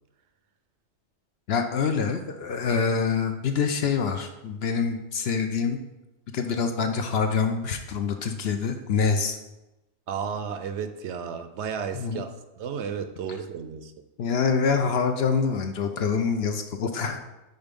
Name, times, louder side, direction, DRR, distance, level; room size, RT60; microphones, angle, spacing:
voice 1, 1.5-5.8 6.3-9.4 11.9-12.2 14.2-17.2, left 5 dB, 65° left, 6 dB, 0.8 m, -25 dB
voice 2, 10.1-13.9, right 6 dB, 70° right, 9 dB, 0.8 m, -33 dB
5.4 x 4.6 x 5.2 m, 1.0 s
omnidirectional pair, 1.3 m